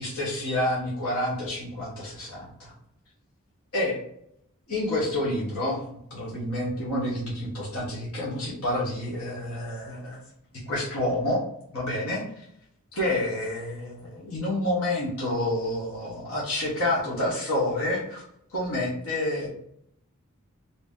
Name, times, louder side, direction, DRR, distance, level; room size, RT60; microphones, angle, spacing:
voice 1, 0.0-2.7 3.7-4.0 4.7-5.8 6.1-10.2 10.7-11.4 11.7-12.4 12.9-18.2 18.5-19.5, left 1 dB, 85° left, -6 dB, 1.1 m, -28 dB
2.9 x 2.7 x 3.5 m, 0.72 s
head